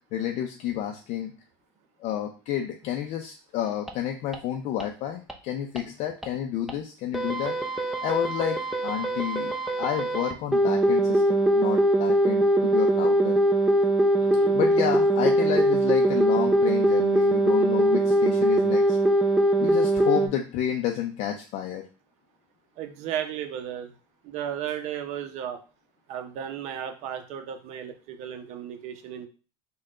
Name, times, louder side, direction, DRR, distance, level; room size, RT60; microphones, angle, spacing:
voice 1, 0.1-1.3 2.0-7.5 8.0-8.6 8.8-13.4 14.5-19.0 19.6-21.8, left 10 dB, 55° left, 4 dB, 0.5 m, -30 dB
sound 1, 3.9-4.0 4.3-4.4 4.8-4.9 5.3-5.4 5.8-5.9 6.2-6.3 6.7-6.8 7.1-20.3, right 1 dB, ahead, 0.5 m, -22 dB
voice 2, 14.2-14.6 22.8-23.9 24.2-25.6 26.1-29.3, right 9 dB, 60° right, 7 dB, 0.7 m, -34 dB
3.5 x 2.3 x 3.7 m, 0.35 s
supercardioid pair, 95°, 13 cm